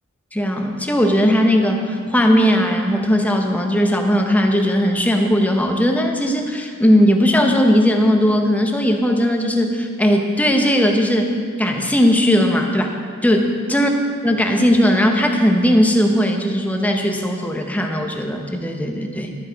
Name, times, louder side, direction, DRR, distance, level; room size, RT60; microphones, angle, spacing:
voice 1, 0.3-12.9 13.2-13.9 14.2-19.3, equal, 5° left, 3 dB, 0.7 m, -18 dB
11.5 x 7.5 x 4.6 m, 2.1 s
head